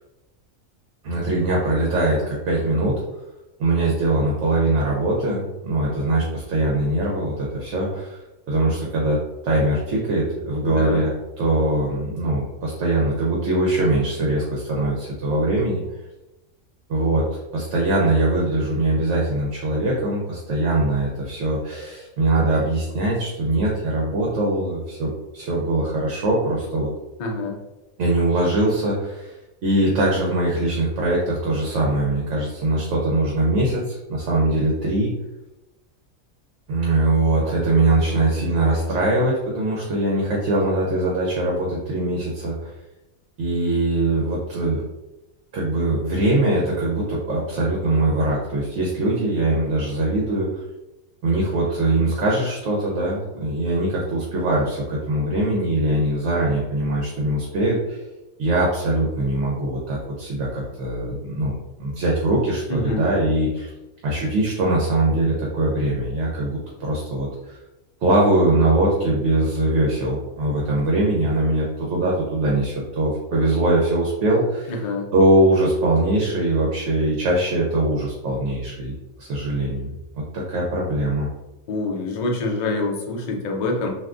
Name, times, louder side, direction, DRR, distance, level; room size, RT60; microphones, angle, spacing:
voice 1, 1.0-2.9 3.6-8.2 8.5-9.2 9.4-15.8 16.9-26.9 28.0-29.3 29.6-35.1 36.7-42.7 43.4-44.8 45.5-50.5 51.2-58.0 58.4-63.7 64.0-67.6 68.0-74.7 75.1-79.9 80.3-81.3, right 2 dB, 65° right, -3 dB, 0.9 m, -22 dB
voice 2, 10.6-11.0 27.2-27.6 62.7-63.1 74.7-75.1 81.7-83.9, left 2 dB, 65° left, 1 dB, 0.4 m, -26 dB
3.4 x 2.5 x 2.4 m, 0.99 s
omnidirectional pair, 1.5 m